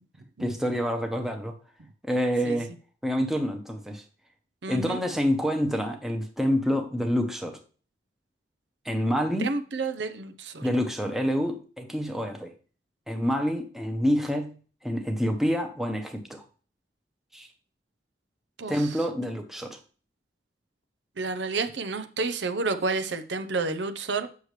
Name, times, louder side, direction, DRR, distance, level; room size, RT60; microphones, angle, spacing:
voice 1, 0.4-1.5 2.0-2.7 3.0-4.0 4.7-7.6 8.8-9.5 10.6-12.5 13.1-14.5 14.8-16.4 17.3-17.5 18.7-19.8, equal, ahead, 0.9 m, -27 dB
voice 2, 4.6-5.0 9.4-10.7 18.6-18.7 21.2-24.3, right 3 dB, 75° right, 0.7 m, -30 dB
8.2 x 6.4 x 3.2 m
head